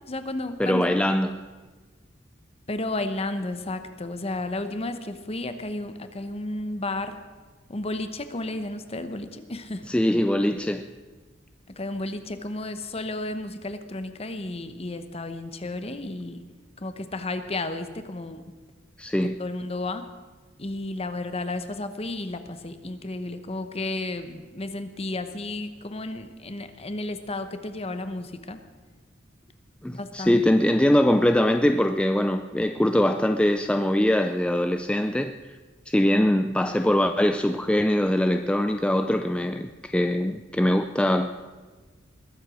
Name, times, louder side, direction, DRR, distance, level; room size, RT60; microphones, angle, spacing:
voice 1, 0.1-1.0 2.7-7.2 7.7-9.9 11.8-16.4 16.8-18.4 19.4-20.0 20.6-28.6 29.9-30.4, left 2 dB, 30° left, 9 dB, 1.0 m, -32 dB
voice 2, 0.6-1.4 9.9-10.8 19.0-19.4 29.8-35.4 35.9-41.3, left 1 dB, 5° left, 7 dB, 0.4 m, -22 dB
21.5 x 8.1 x 6.3 m, 1.4 s
head